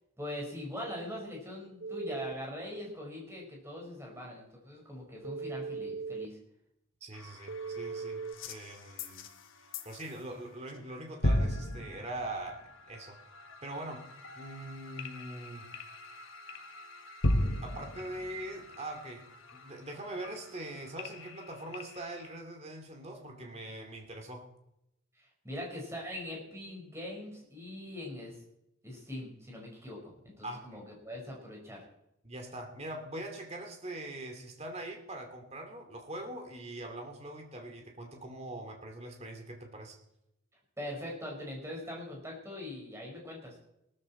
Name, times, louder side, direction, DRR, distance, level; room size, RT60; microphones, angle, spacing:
voice 1, 0.2-6.4 25.2-28.4 28.8-31.8 40.8-43.6, left 1 dB, 15° right, -1 dB, 5.2 m, -42 dB
Telephone, 1.8-2.3 5.2-6.3 7.5-8.3, right 5 dB, 55° right, 0.5 m, -38 dB
voice 2, 7.0-9.3 9.8-13.2 13.6-14.1 14.4-15.7 17.6-19.3 19.5-24.5 30.4-30.8 32.2-40.0, right 1 dB, 30° right, 3 dB, 2.5 m, -42 dB
sound 1, 7.1-10.4 10.6-11.0 11.2-22.3, left 1 dB, 65° left, 1.4 m, -37 dB
18.0 x 13.5 x 4.3 m, 0.83 s
head